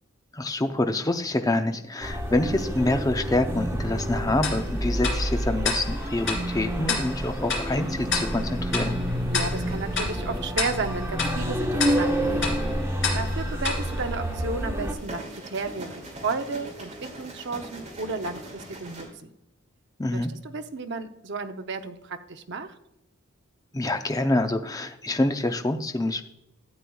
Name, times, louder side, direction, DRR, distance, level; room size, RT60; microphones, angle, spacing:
voice 1, 0.3-9.0 20.0-20.3 23.7-26.2, left 2 dB, 15° left, 7 dB, 0.5 m, -26 dB
sound 1, 2.0-14.9, equal, 15° right, 1.1 m, -29 dB
Tick-tock, 4.4-14.9, left 4 dB, 60° left, 2.8 m, -32 dB
voice 2, 9.3-12.5 13.1-19.3 20.1-22.7, right 3 dB, 60° right, 7 dB, 0.7 m, -33 dB
sound 2, 9.5-10.1 12.1-12.8 14.7-19.0, right 1 dB, 35° right, 2.4 m, -42 dB
12.5 x 8.5 x 2.3 m, 0.86 s
head